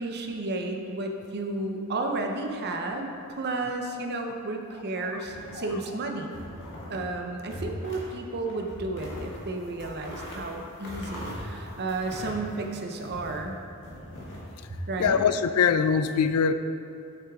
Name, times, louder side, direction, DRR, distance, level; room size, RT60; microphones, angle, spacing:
voice 1, 0.0-3.1 3.4-6.3 6.9-13.6 14.7-15.2, right 2 dB, 50° right, 3 dB, 0.7 m, -32 dB
sound 1, 5.2-5.9 6.3-7.1 7.4-8.1 8.5-13.4 13.8-15.1, equal, 55° left, 1.7 m, -40 dB
voice 2, 15.0-16.5, left 6 dB, 80° left, 11 dB, 0.4 m, -23 dB
8.3 x 6.4 x 3.6 m, 2.6 s
head